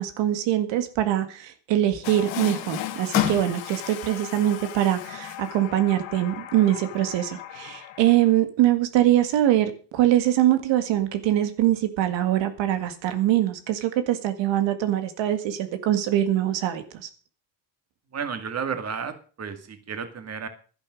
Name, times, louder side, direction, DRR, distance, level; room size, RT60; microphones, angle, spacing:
voice 1, 0.0-17.1, right 12 dB, 80° right, 9 dB, 1.9 m, -23 dB
Water tap faucet, 2.0-8.4, left 12 dB, 85° left, 2.1 m, -33 dB
voice 2, 18.1-20.5, right 6 dB, 35° right, 9 dB, 2.1 m, -32 dB
12.0 x 10.5 x 6.4 m, 0.39 s
cardioid pair, 125°, 43 cm